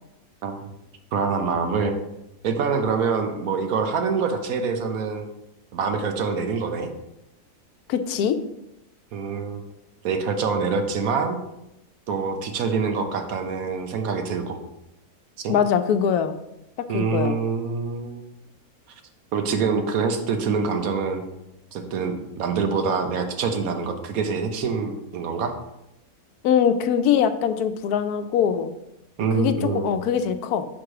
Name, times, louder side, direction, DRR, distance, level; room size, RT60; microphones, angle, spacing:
voice 1, 1.1-2.0 2.4-5.2 5.7-6.9 9.1-9.6 10.0-11.4 12.1-14.6 15.4-15.6 16.9-18.2 19.3-21.2 21.7-25.5 29.2-29.9, right 5 dB, 70° right, 6 dB, 1.2 m, -25 dB
voice 2, 7.9-8.4 15.5-16.4 16.9-17.4 26.4-28.7 29.3-30.7, left 8 dB, 90° left, 9 dB, 1.1 m, -22 dB
6.0 x 4.4 x 4.8 m, 0.88 s
omnidirectional pair, 1.6 m